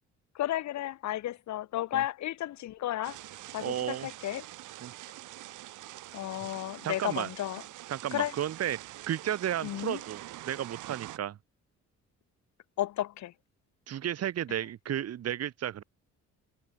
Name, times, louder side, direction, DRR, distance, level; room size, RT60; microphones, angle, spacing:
voice 1, 0.3-3.2 3.5-4.4 6.1-7.6 8.1-8.3 9.6-10.0 12.8-13.3 14.5-14.6, left 13 dB, 65° left, 0.9 m, -33 dB
sound 1, 3.0-11.2, right 15 dB, 80° right, 1.3 m, -45 dB
voice 2, 3.6-4.1 4.8-4.9 6.8-7.3 7.9-8.8 9.1-11.4 13.9-15.8, right 10 dB, 55° right, 1.2 m, -33 dB
cardioid pair, 90°, 30 cm